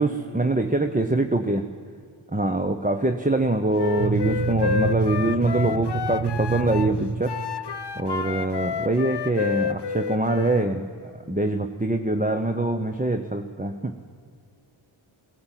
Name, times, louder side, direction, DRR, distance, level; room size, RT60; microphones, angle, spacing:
voice 1, 0.0-1.7 2.3-7.4 7.9-13.9, right 2 dB, 15° right, 7 dB, 0.9 m, -24 dB
Wind instrument woodwind instrument, 3.7-6.9 7.3-10.7, left 7 dB, 55° left, 0.8 m, -30 dB
sound 1, 4.0-7.7, right 4 dB, 70° right, 0.9 m, -27 dB
18.0 x 16.5 x 9.0 m, 2.3 s
wide cardioid pair, 45°, 49 cm